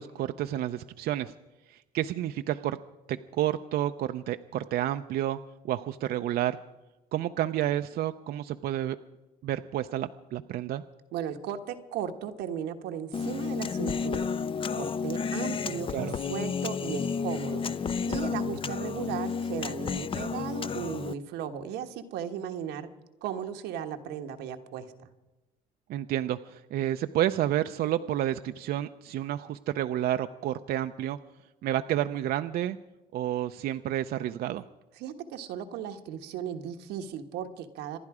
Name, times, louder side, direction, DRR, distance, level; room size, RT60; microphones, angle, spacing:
voice 1, 0.0-1.3 1.7-2.8 3.1-5.4 5.6-6.6 7.1-9.0 9.4-10.8 15.9-16.1 25.9-31.2 31.6-32.8 33.1-34.6, right 12 dB, 65° right, 9 dB, 0.5 m, -30 dB
voice 2, 11.1-14.3 14.7-17.8 18.1-22.9 23.2-25.1 35.0-38.0, right 8 dB, 90° right, 6 dB, 1.3 m, -36 dB
Human voice, 13.1-21.1, left 6 dB, 30° left, 0.5 m, -31 dB
26.5 x 11.0 x 4.9 m, 1.1 s
cardioid pair, 110°, 17 cm